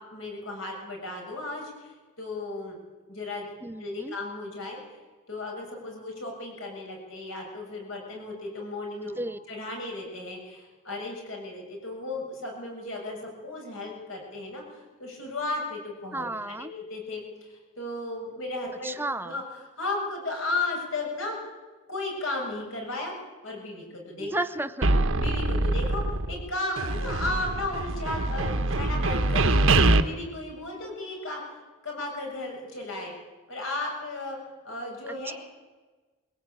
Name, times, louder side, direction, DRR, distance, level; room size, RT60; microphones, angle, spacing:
voice 1, 0.1-2.8 3.1-3.5 3.8-5.0 5.3-9.2 9.5-19.0 19.2-19.4 19.8-21.5 21.9-23.2 23.4-24.3 25.1-26.0 26.3-29.6 30.0-33.1 33.5-34.4 34.6-35.3, left 2 dB, 60° left, 0 dB, 7.3 m, -35 dB
voice 2, 3.6-4.2 9.2-9.4 16.1-16.7 18.8-19.4 24.2-24.9 35.1-35.3, right 2 dB, 10° right, 11 dB, 0.6 m, -33 dB
sound 1, 24.8-26.5 26.8-30.0, right 2 dB, 60° right, 1.2 m, -24 dB
21.5 x 16.5 x 9.0 m, 1.3 s
head